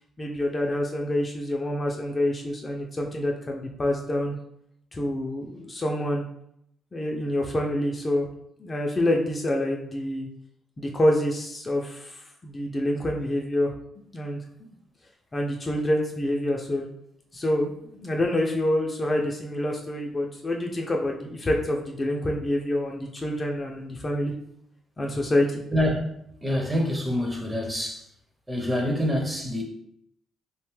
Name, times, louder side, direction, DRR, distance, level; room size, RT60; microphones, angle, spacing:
voice 1, 0.2-4.4 4.9-6.3 6.9-8.3 8.6-10.3 10.8-13.7 14.1-14.4 15.3-16.8 17.3-17.7 18.0-24.3 25.0-25.6, left 1 dB, 30° left, 0 dB, 0.4 m, -27 dB
voice 2, 25.7-26.0 26.4-28.1 28.5-29.6, equal, 15° right, 1 dB, 0.6 m, -26 dB
2.7 x 2.2 x 3.0 m, 0.74 s
cardioid pair, 80°, 0 cm